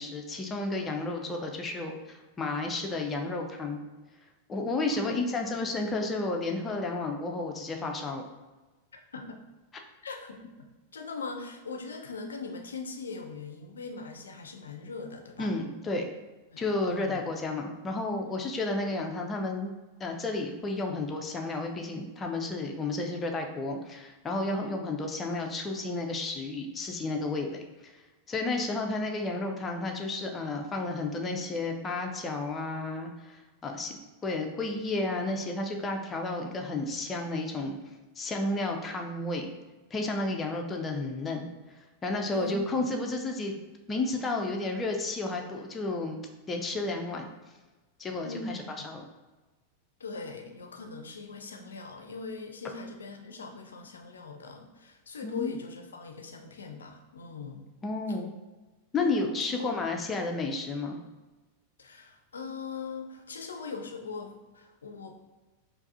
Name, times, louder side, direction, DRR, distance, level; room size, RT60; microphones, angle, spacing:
voice 1, 0.0-3.8 4.5-8.3 15.4-16.1 16.6-19.7 20.0-28.0 28.3-34.0 34.2-37.8 38.2-39.5 39.9-41.5 42.0-43.6 43.9-46.2 46.5-47.3 48.0-48.6 48.8-49.0 55.2-55.5 57.8-58.3 58.9-61.0, left 2 dB, 20° left, 2 dB, 0.5 m, -32 dB
voice 2, 4.9-5.6 9.1-9.4 10.0-10.5 10.9-15.5 16.5-17.2 42.3-42.9 48.2-48.9 50.0-57.7 59.0-59.2 59.5-59.9 61.8-65.1, left 4 dB, 70° left, 4 dB, 0.4 m, -41 dB
4.7 x 2.6 x 2.5 m, 1.2 s
figure-of-eight pair, 90°, 0 cm